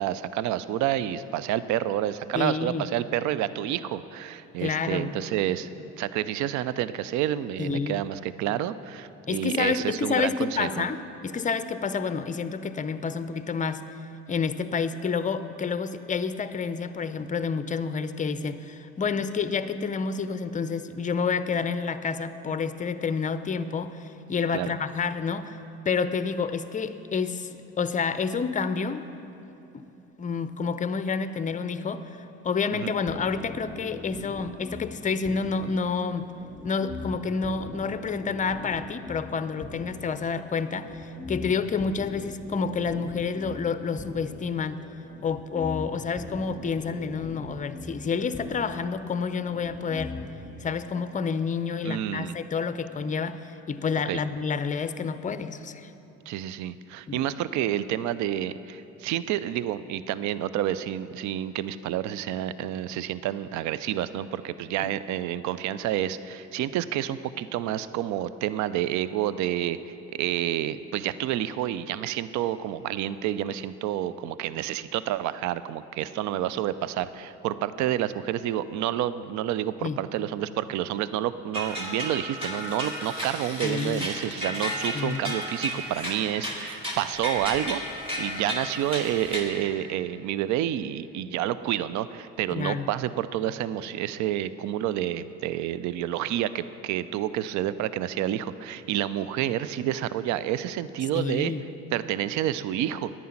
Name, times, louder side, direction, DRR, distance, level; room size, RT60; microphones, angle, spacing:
voice 1, 0.0-10.9 24.5-24.7 32.7-32.9 51.8-52.4 54.1-54.2 56.3-87.8 88.2-101.5 101.9-103.1, right 12 dB, 60° right, 15 dB, 0.5 m, -29 dB
voice 2, 2.3-2.9 4.6-5.2 7.6-8.0 9.3-13.8 14.3-25.6 25.9-29.1 29.7-29.8 30.2-36.3 36.6-44.8 45.2-50.2 50.6-55.9 57.1-57.3 64.8-64.9 79.8-80.0 83.6-84.1 84.9-85.4 92.5-92.9 101.1-101.6, left 5 dB, 25° left, 12 dB, 0.5 m, -29 dB
sound 1, 33.1-50.5, left 3 dB, 5° left, 1.6 m, -42 dB
sound 2, 81.5-89.4, equal, 15° right, 2.3 m, -33 dB
9.8 x 9.2 x 5.8 m, 3.0 s
supercardioid pair, 70°, 33 cm